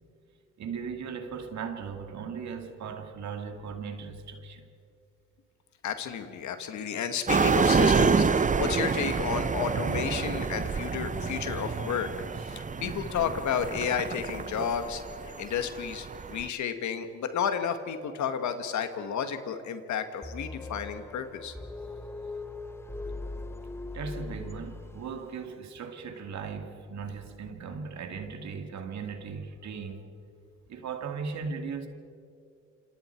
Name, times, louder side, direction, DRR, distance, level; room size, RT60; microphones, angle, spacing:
voice 1, 0.6-4.6 23.9-30.1 30.7-31.9, right 5 dB, 65° right, 2.5 m, -37 dB
voice 2, 5.8-21.5, left 7 dB, 70° left, 2.0 m, -32 dB
sound 1, 7.3-16.5, right 5 dB, 25° right, 0.8 m, -27 dB
sound 2, 20.2-25.2, left 2 dB, 10° left, 1.1 m, -40 dB
27.5 x 26.5 x 4.7 m
cardioid pair, 90°, 30 cm